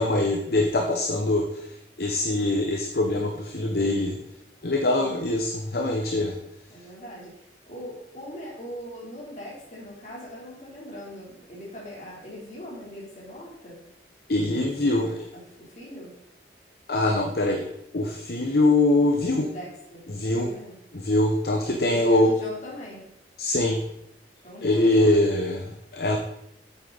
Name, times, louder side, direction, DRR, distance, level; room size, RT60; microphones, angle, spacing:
voice 1, 0.0-1.7 2.0-4.1 4.6-6.3 14.3-15.3 16.9-17.7 17.9-19.5 20.1-20.5 20.9-22.3 23.4-23.8 24.6-26.2, left 2 dB, 60° left, 2 dB, 0.9 m, -23 dB
voice 2, 6.7-7.3 7.7-13.8 14.5-16.1 19.2-20.8 21.8-23.0 24.4-25.2, equal, 40° left, -4 dB, 3.3 m, -40 dB
8.4 x 8.3 x 4.0 m, 0.81 s
head